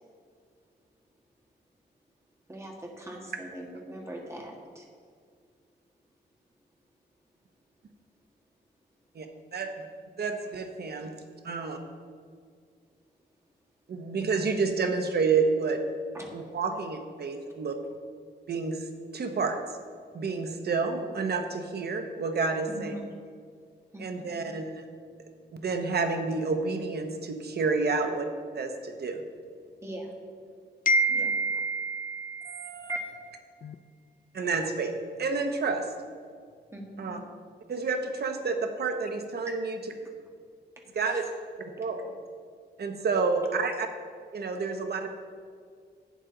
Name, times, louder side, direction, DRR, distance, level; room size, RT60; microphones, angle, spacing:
voice 1, 2.5-4.9 16.1-16.3 22.7-23.1 23.9-24.4 29.8-30.1 31.1-31.3 32.9-33.0 36.7-37.1 41.0-41.2, right 1 dB, 15° right, 0 dB, 1.7 m, -40 dB
voice 2, 10.2-11.1 11.4-11.8 13.9-15.8 16.3-17.7 18.5-18.8 19.1-19.6 20.1-22.9 24.0-24.8 25.5-28.3 28.5-29.2 32.4-32.9 34.3-35.9 37.0-37.2 37.7-39.8 40.9-41.2 41.8-42.1 42.8-43.9 44.3-45.1, right 4 dB, 65° right, 5 dB, 0.9 m, -29 dB
voice 3, 30.9-32.7 33.6-33.7, right 1 dB, 50° left, 12 dB, 0.4 m, -27 dB
11.5 x 8.9 x 3.8 m, 2.1 s
wide cardioid pair, 145°, 18 cm